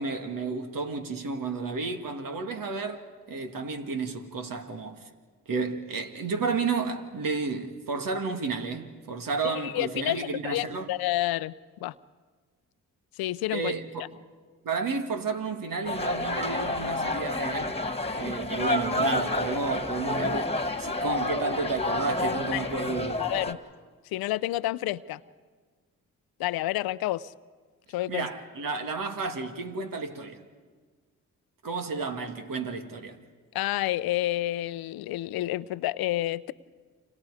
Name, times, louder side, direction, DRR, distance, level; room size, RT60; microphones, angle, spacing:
voice 1, 0.0-3.0 3.3-5.0 5.5-10.9 13.5-14.0 14.6-17.8 18.2-23.2 28.1-30.4 31.6-33.2, right 4 dB, 65° right, 2.2 m, -32 dB
voice 2, 9.4-11.5 11.8-11.9 13.2-13.7 22.5-22.6 23.2-23.6 24.1-25.2 26.4-27.3 27.9-28.3 33.5-36.5, left 15 dB, 85° left, 0.6 m, -29 dB
sound 1, 15.8-23.5, left 2 dB, 15° left, 2.0 m, -29 dB
29.5 x 26.0 x 5.0 m
supercardioid pair, 50°, 35 cm